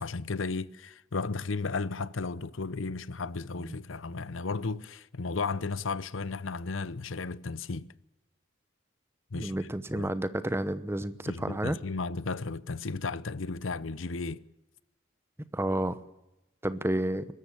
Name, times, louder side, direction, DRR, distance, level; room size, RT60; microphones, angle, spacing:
voice 1, 0.0-7.9 9.3-10.1 11.3-14.4, left 4 dB, 80° left, 0.8 m, -34 dB
voice 2, 9.3-11.8 15.5-16.0 16.6-17.3, right 1 dB, 10° right, 0.9 m, -30 dB
23.5 x 13.5 x 8.5 m
head